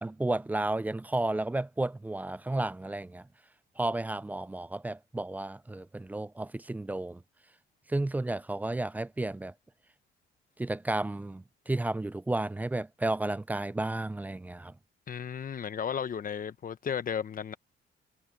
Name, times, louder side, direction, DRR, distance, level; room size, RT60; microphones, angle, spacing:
voice 1, 0.0-3.3 3.8-7.2 7.9-9.5 10.6-14.7, right 2 dB, 10° right, 0.3 m, -32 dB
voice 2, 15.1-17.5, left 7 dB, 45° left, 1.1 m, -34 dB
cardioid pair, 90°, 20 cm